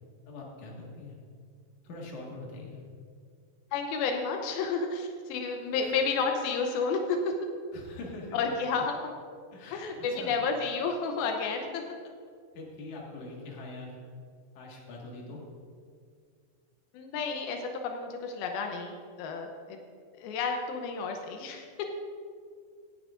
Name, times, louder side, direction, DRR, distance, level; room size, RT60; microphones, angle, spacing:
voice 1, 0.3-1.1 1.8-2.8 5.8-6.0 7.7-8.4 9.5-9.8 10.1-10.4 12.5-14.0 14.5-15.5, left 2 dB, 55° left, -2 dB, 2.9 m, -43 dB
voice 2, 3.7-7.4 8.3-8.9 9.7-11.8 16.9-19.8 20.2-21.9, left 4 dB, 85° left, 3 dB, 2.6 m, -31 dB
17.5 x 10.5 x 2.5 m, 2.1 s
omnidirectional pair, 4.2 m